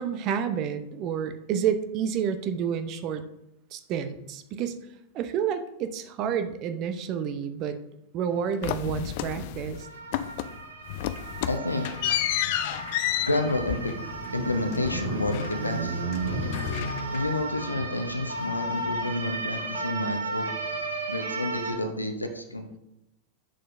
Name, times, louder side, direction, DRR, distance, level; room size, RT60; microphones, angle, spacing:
voice 1, 0.0-3.2 3.7-4.8 5.1-7.8 8.1-9.9, right 8 dB, 40° right, 9 dB, 0.7 m, -29 dB
sound 1, 8.6-9.8 10.1-10.6 10.9-15.8 16.1-17.4, left 12 dB, 50° left, 0.3 m, -31 dB
sound 2, 8.6-8.7 9.1-9.2 9.6-21.7, right 2 dB, 70° right, 1.1 m, -34 dB
voice 2, 11.5-11.9 13.2-13.9 14.3-16.0 17.1-20.5 21.1-22.8, left 2 dB, 85° left, 7 dB, 0.7 m, -29 dB
7.6 x 6.6 x 2.6 m, 0.84 s
figure-of-eight pair, 90°, 0 cm